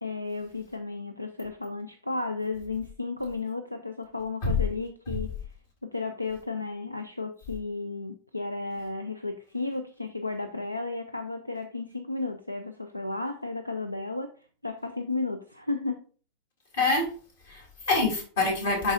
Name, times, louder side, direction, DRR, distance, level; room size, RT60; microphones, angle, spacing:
voice 1, 0.0-5.3 5.8-14.3 14.6-16.0, left 3 dB, 85° left, 9 dB, 0.5 m, -33 dB
voice 2, 16.7-17.1 17.5-18.9, left 3 dB, 60° left, -1 dB, 2.9 m, -26 dB
11.0 x 3.9 x 2.5 m, 0.39 s
figure-of-eight pair, 90°, 0 cm